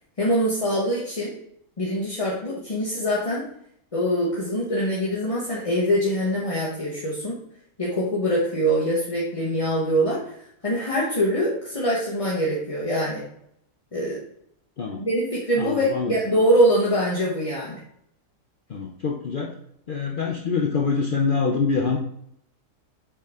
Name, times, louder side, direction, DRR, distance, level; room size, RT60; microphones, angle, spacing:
voice 1, 0.2-1.4 1.8-3.4 3.9-7.4 7.8-10.3 10.6-13.2 13.9-14.2 15.0-17.8, equal, 25° left, -6 dB, 1.1 m, -23 dB
voice 2, 15.6-16.2 18.7-19.5 19.9-22.0, left 5 dB, 80° left, 1 dB, 0.4 m, -25 dB
7.6 x 4.6 x 3.6 m, 0.71 s
omnidirectional pair, 1.8 m